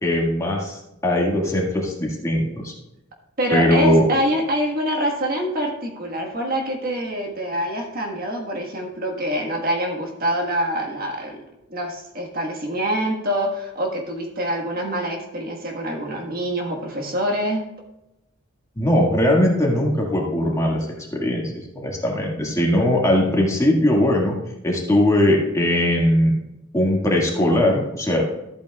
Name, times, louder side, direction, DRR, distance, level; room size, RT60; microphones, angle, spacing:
voice 1, 0.0-2.7 3.5-4.1 18.8-20.9 21.1-24.4 24.6-26.4 26.7-28.3, left 1 dB, 15° left, -2 dB, 1.8 m, -20 dB
voice 2, 3.4-11.4 11.7-17.6, equal, 50° right, 1 dB, 1.5 m, -25 dB
14.0 x 8.5 x 2.3 m, 0.89 s
head